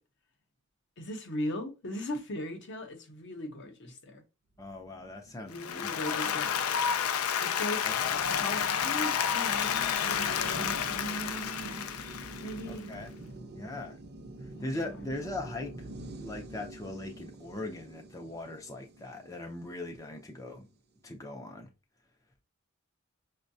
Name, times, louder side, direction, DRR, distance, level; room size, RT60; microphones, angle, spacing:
voice 1, 1.0-4.2 5.5-7.0 7.4-7.9 8.3-11.8 12.4-13.0 14.5-15.1, left 1 dB, 55° left, 0.8 m, -39 dB
voice 2, 4.6-5.9 6.3-6.4 7.8-8.0 12.7-13.1 13.5-14.0 14.6-15.9 16.2-20.7 21.0-21.7, left 2 dB, 15° left, 0.4 m, -40 dB
sound 1, 4.6-20.1, right 2 dB, 50° right, 0.5 m, -46 dB
Applause, 5.5-12.7, left 8 dB, 90° left, 0.4 m, -30 dB
5.4 x 2.1 x 2.6 m
head